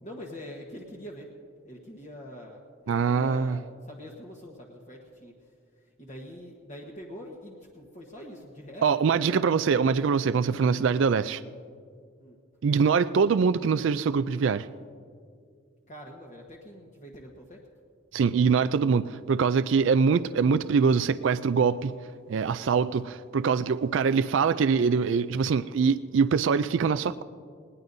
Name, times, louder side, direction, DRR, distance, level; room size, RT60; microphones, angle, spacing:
voice 1, 0.0-1.3 1.6-5.5 5.8-9.5 10.4-11.3 12.2-12.4 15.9-17.6, equal, 35° left, 1.2 m, -45 dB
voice 2, 2.9-3.6 8.8-11.4 12.6-14.7 18.1-21.9 22.3-27.2, right 5 dB, 65° right, 0.3 m, -23 dB
20.0 x 19.5 x 2.7 m
head